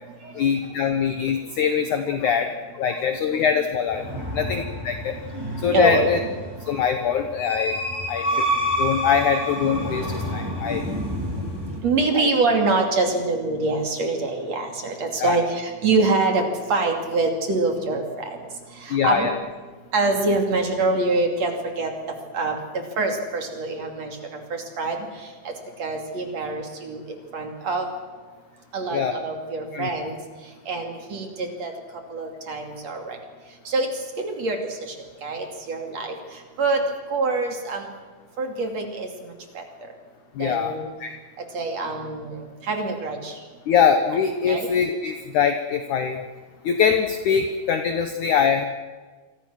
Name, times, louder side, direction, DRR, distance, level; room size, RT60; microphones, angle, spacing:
voice 1, 0.4-2.5 2.8-5.2 5.6-6.2 6.7-7.8 8.1-8.5 8.8-10.8 12.1-12.3 15.2-15.4 18.9-19.4 28.9-29.1 29.7-29.9 40.4-40.7 41.0-41.1 43.7-46.2 46.6-48.6, left 7 dB, 70° left, 6 dB, 1.9 m, -23 dB
sound 1, 3.9-11.8, equal, 5° right, 4.5 m, -29 dB
voice 2, 5.7-6.1 11.8-18.0 18.8-19.3 19.9-21.9 22.3-22.6 23.0-24.2 24.5-25.0 25.4-25.5 25.8-27.0 27.3-27.9 28.7-30.1 30.7-31.7 32.1-33.2 33.7-33.9 34.2-34.6 35.2-36.1 36.6-36.8 37.1-37.9 38.4-39.1 39.5-39.6 40.4-40.9 41.5-43.3 44.5-44.7, right 3 dB, 40° right, 4 dB, 3.4 m, -25 dB
28.0 x 23.5 x 6.4 m, 1.4 s
omnidirectional pair, 5.2 m